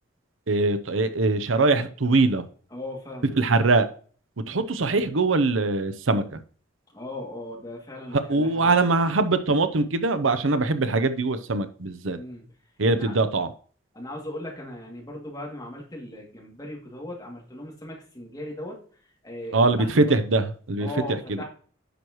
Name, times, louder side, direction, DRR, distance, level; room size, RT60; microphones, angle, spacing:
voice 1, 0.5-2.4 3.4-3.9 4.5-6.4 8.1-12.2 12.8-13.5 19.5-21.4, right 3 dB, 90° right, 0.8 m, -22 dB
voice 2, 2.7-3.4 6.9-8.8 12.2-12.4 12.9-13.2 13.9-18.8 19.2-20.2 20.8-21.4, left 1 dB, 20° left, 2.4 m, -38 dB
10.0 x 6.3 x 3.1 m
head